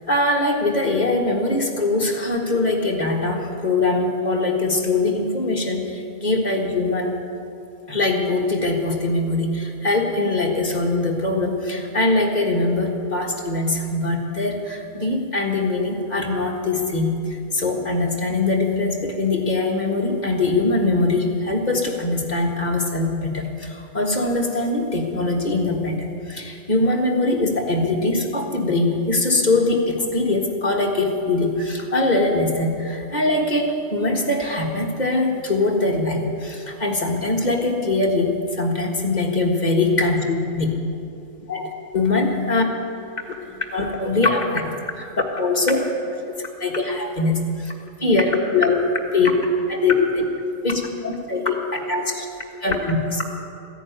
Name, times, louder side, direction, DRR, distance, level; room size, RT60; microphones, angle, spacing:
voice 1, 0.1-7.2 7.9-40.7 41.5-42.7 43.3-45.8 46.6-47.7 48.0-48.9 49.1-49.4 49.7-50.3 50.6-52.3 52.6-53.2, left 2 dB, 35° left, 0 dB, 1.8 m, -22 dB
15.0 x 10.5 x 9.1 m, 2.5 s
omnidirectional pair, 1.4 m